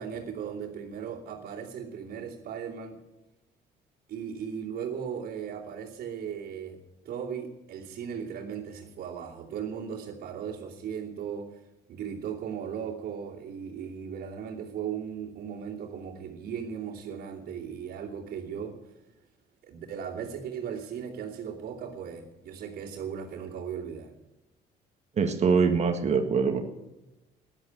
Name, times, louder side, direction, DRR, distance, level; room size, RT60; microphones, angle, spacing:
voice 1, 0.0-3.0 4.1-6.8 7.0-11.6 11.9-18.9 19.6-24.1, right 7 dB, 65° right, -6 dB, 2.8 m, -37 dB
voice 2, 25.2-26.6, right 5 dB, 40° right, 6 dB, 1.8 m, -23 dB
14.0 x 11.0 x 9.4 m, 1.0 s
cardioid pair, 110°, 17 cm